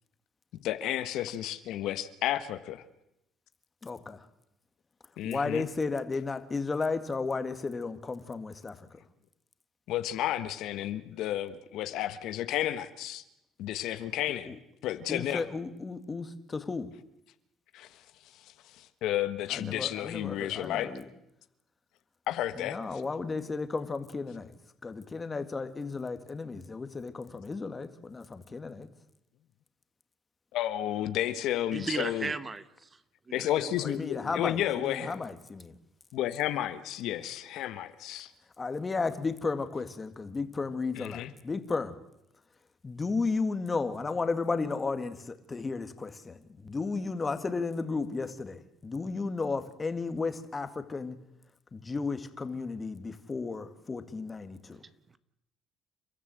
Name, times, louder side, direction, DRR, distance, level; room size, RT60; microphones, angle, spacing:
voice 1, 0.5-2.8 5.2-5.7 9.9-13.2 13.6-14.6 14.8-15.4 17.7-17.9 18.7-20.9 22.3-22.8 30.5-32.3 33.3-35.1 36.1-38.3 40.9-41.3, left 12 dB, 75° left, 1.3 m, -32 dB
voice 2, 3.8-4.2 5.2-8.9 14.5-14.6 15.1-16.9 19.5-21.0 22.6-24.5 24.8-28.9 33.8-35.7 38.6-42.0 42.8-51.2 51.7-54.8, left 4 dB, 25° left, 2.0 m, -34 dB
voice 3, 31.7-33.0 33.3-33.9 54.8-55.2, right 4 dB, 25° right, 1.1 m, -37 dB
29.5 x 13.5 x 7.9 m
cardioid pair, 95°, 0 cm